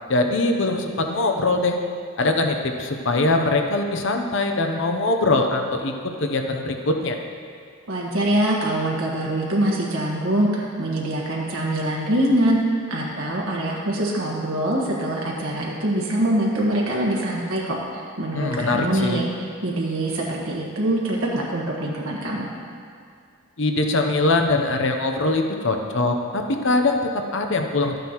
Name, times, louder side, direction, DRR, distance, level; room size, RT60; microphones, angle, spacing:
voice 1, 0.1-1.8 2.2-7.2 18.3-19.2 23.6-27.9, left 2 dB, 60° left, 4 dB, 0.8 m, -22 dB
voice 2, 7.9-12.6 12.9-22.5, right 1 dB, 75° right, -3 dB, 1.4 m, -24 dB
13.0 x 9.1 x 3.0 m, 2.3 s
head